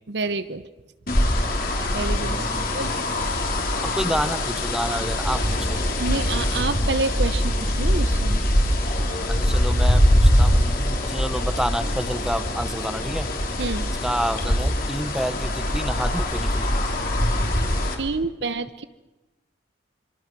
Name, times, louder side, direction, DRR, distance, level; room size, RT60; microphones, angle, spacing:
voice 1, 0.1-0.7 1.9-2.5 2.7-2.9 6.0-8.4 13.6-13.9 18.0-18.8, right 3 dB, 65° right, 13 dB, 1.0 m, -28 dB
sound 1, 1.1-17.9, left 1 dB, 50° left, 3.3 m, -23 dB
voice 2, 2.2-2.7 3.8-5.8 9.3-13.3 14.0-16.7, equal, 5° right, 10 dB, 1.0 m, -29 dB
26.5 x 24.5 x 6.2 m, 1.0 s
head